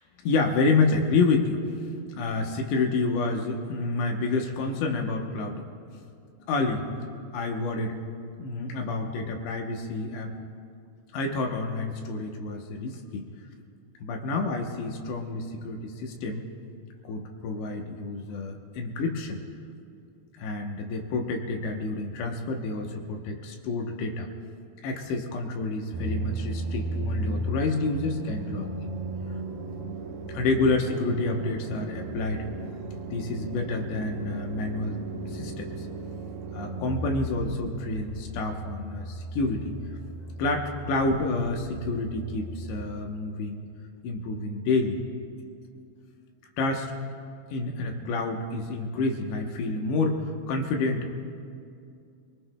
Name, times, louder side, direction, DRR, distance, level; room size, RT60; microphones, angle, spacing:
voice 1, 0.2-5.6 6.5-7.0 7.3-8.0 8.4-10.3 11.1-13.3 14.0-16.5 17.0-19.4 20.4-24.3 24.8-28.9 30.3-32.4 33.1-35.0 35.3-35.9 36.5-39.7 40.4-43.6 44.0-45.0 46.6-46.9 47.5-51.1, left 3 dB, 75° left, 2 dB, 2.9 m, -28 dB
sound 1, 25.9-42.9, right 2 dB, 75° right, 2.2 m, -35 dB
26.5 x 20.5 x 2.2 m, 2.4 s
omnidirectional pair, 5.5 m